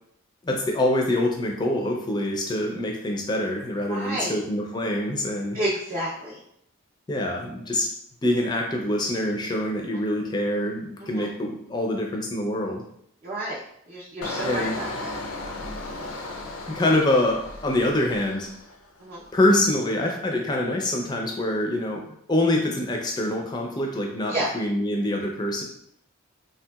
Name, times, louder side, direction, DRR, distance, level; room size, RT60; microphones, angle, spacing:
voice 1, 0.4-5.6 7.1-7.9 8.2-12.8 14.4-14.7 16.7-18.5 19.3-25.6, left 1 dB, 20° left, 1 dB, 0.4 m, -25 dB
voice 2, 3.9-4.4 5.5-6.4 11.0-11.3 13.2-13.6 13.9-15.1 19.0-19.2 24.3-24.5, right 1 dB, 40° right, -6 dB, 0.5 m, -30 dB
Engine, 14.2-18.9 19.2-19.6, left 2 dB, 85° left, 0.4 m, -35 dB
3.2 x 2.8 x 2.3 m, 0.71 s
head